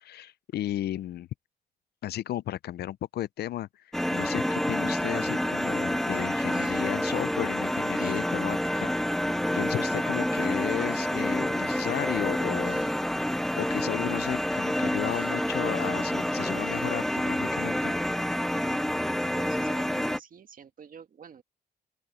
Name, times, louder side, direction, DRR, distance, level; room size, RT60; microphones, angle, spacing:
voice 1, 0.0-1.3 2.0-8.9 9.5-12.9 13.6-17.9, left 13 dB, 80° left, 0.5 m, -34 dB
sound 1, 3.9-20.2, equal, ahead, 0.3 m, -28 dB
sound 2, 6.0-17.6, right 4 dB, 35° right, 4.2 m, -61 dB
voice 2, 19.3-21.4, right 7 dB, 55° right, 1.8 m, -47 dB
open air
cardioid pair, 90°, 17 cm